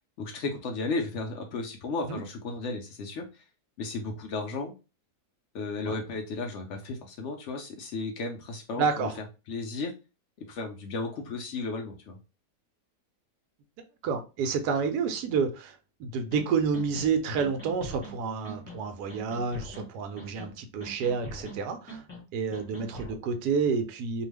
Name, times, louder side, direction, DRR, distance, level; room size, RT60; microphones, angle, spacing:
voice 1, 0.2-3.5 3.8-4.7 5.5-9.1 9.5-9.9 10.4-12.2, left 3 dB, 70° left, 0.7 m, -34 dB
voice 2, 8.8-9.2 14.0-22.0 22.3-24.3, right 5 dB, 80° right, 1.1 m, -29 dB
sound 1, 16.3-16.4 16.7-17.1 17.4-18.1 18.4-18.8 19.1-19.8 20.2-20.5 20.8-21.6 21.9-22.2 22.5-23.2, right 1 dB, 10° left, 1.0 m, -42 dB
2.7 x 2.3 x 3.2 m
omnidirectional pair, 1.7 m